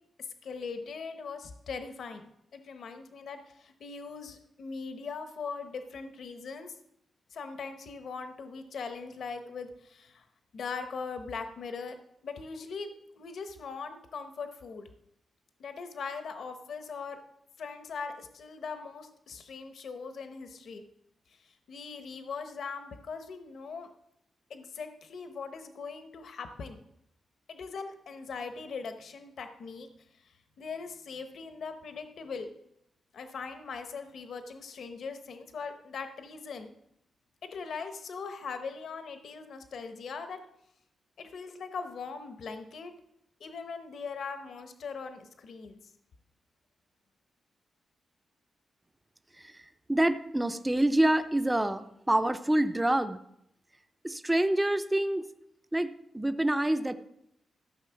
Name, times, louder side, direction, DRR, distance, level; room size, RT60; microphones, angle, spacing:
voice 1, 0.4-6.7 7.3-10.2 10.5-12.0 12.2-14.9 15.6-17.2 17.6-20.8 21.4-23.9 24.5-26.8 27.5-29.9 30.2-32.5 33.1-36.7 37.4-40.4 41.2-42.9 43.4-45.8, left 5 dB, 60° left, 7 dB, 1.0 m, -40 dB
voice 2, 49.4-53.2 54.0-55.2 55.7-56.9, right 1 dB, 10° right, 9 dB, 0.5 m, -27 dB
14.0 x 6.8 x 5.7 m, 0.78 s
wide cardioid pair, 165°, 0 cm